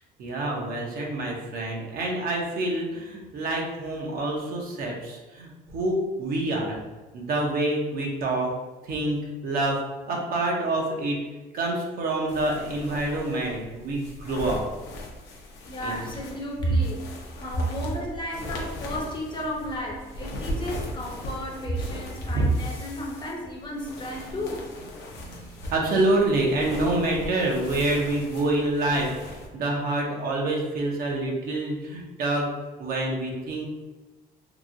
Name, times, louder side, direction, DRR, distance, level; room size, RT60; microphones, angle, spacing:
voice 1, 0.2-6.8 7.1-8.5 8.8-9.8 10.1-11.2 11.5-14.6 15.8-16.1 22.3-22.5 25.2-32.5 32.8-33.7, right 2 dB, 65° right, -1 dB, 0.8 m, -27 dB
sound 1, 12.3-29.5, left 1 dB, 90° left, 0.7 m, -39 dB
voice 2, 15.7-24.7, left 1 dB, 30° left, -1 dB, 0.7 m, -34 dB
2.9 x 2.7 x 2.5 m, 1.2 s
cardioid pair, 110°, 17 cm